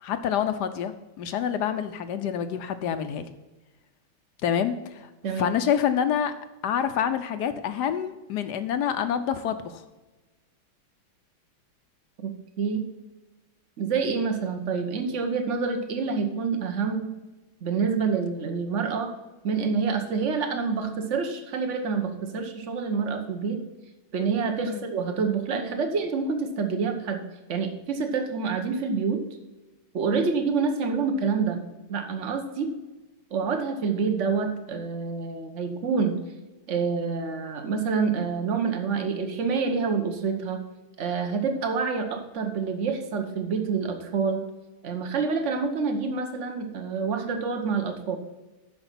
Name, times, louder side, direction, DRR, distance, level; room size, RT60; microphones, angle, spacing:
voice 1, 0.0-3.3 4.4-5.1 5.4-6.3 6.6-9.8 24.7-24.8 30.1-30.3, left 8 dB, 65° left, 9 dB, 1.1 m, -27 dB
voice 2, 5.2-5.6 12.2-12.9 13.8-17.1 17.6-19.1 19.4-23.6 24.1-27.2 27.5-29.2 29.9-31.6 31.9-32.7 33.3-36.2 36.7-40.6 41.0-44.4 44.8-48.2, right 5 dB, 40° right, 5 dB, 1.2 m, -27 dB
12.0 x 5.2 x 5.7 m, 1.1 s
omnidirectional pair, 2.3 m